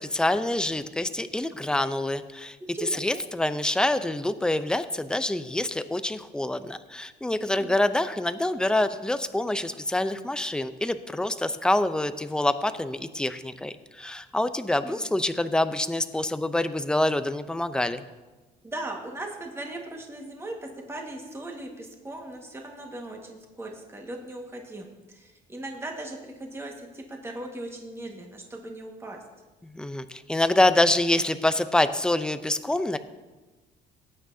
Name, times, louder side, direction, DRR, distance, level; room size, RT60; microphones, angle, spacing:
voice 1, 0.0-2.6 3.0-18.0 29.6-33.0, left 1 dB, 5° left, 11 dB, 0.6 m, -26 dB
voice 2, 2.7-3.2 7.5-7.7 14.8-15.1 18.6-29.2, right 1 dB, 15° right, 1 dB, 1.6 m, -38 dB
18.5 x 8.8 x 2.8 m, 1.2 s
cardioid pair, 110°, 17 cm